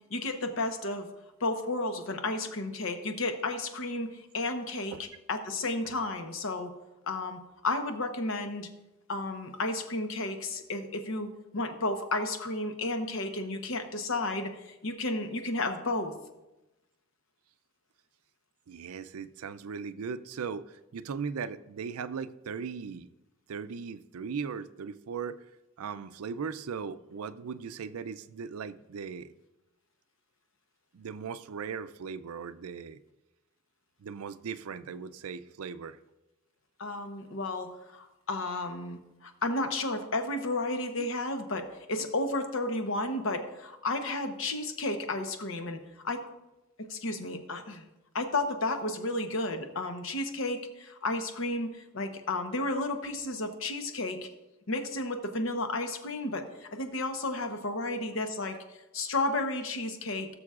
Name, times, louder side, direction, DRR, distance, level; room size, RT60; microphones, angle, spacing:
voice 1, 0.1-1.1 1.4-6.7 7.1-8.7 9.1-16.1 36.8-46.2 46.9-47.9 48.1-54.3 54.7-58.6 58.9-60.3, left 2 dB, 65° left, 6 dB, 0.9 m, -32 dB
voice 2, 18.7-23.1 23.5-25.4 25.8-29.3 30.9-33.0 34.0-36.0, right 6 dB, 90° right, 14 dB, 0.4 m, -38 dB
17.0 x 6.9 x 2.4 m, 0.98 s
head